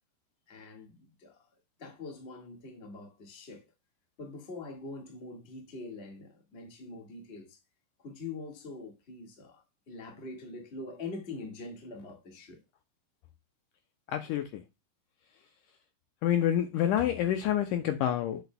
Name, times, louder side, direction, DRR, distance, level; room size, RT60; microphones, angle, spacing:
voice 1, 0.5-1.4 1.8-3.7 4.2-7.6 8.0-12.6, left 3 dB, 45° left, 0.8 m, -44 dB
voice 2, 14.1-14.6 16.2-18.4, left 10 dB, 85° left, 1.8 m, -28 dB
8.1 x 6.7 x 2.2 m
omnidirectional pair, 4.1 m